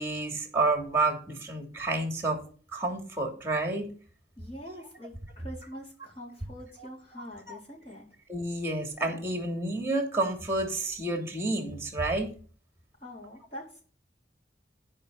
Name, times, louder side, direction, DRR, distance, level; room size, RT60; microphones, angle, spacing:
voice 1, 0.0-2.4 2.7-3.9 6.8-7.2 7.5-7.6 8.3-12.3, right 2 dB, 15° right, 4 dB, 3.0 m, -30 dB
voice 2, 4.4-8.1 13.0-13.8, equal, 35° left, -4 dB, 4.4 m, -44 dB
13.5 x 5.4 x 6.8 m, 0.42 s
head